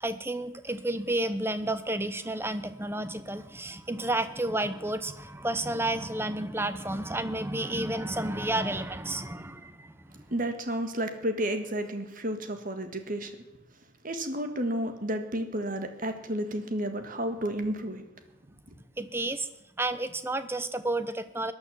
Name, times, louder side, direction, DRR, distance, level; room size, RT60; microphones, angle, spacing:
voice 1, 0.0-9.9 19.0-19.5 19.8-21.5, right 1 dB, 10° right, 12 dB, 0.8 m, -31 dB
voice 2, 10.3-13.4 14.0-18.0, right 1 dB, 40° right, 8 dB, 1.7 m, -31 dB
18.5 x 10.5 x 7.2 m, 0.99 s
head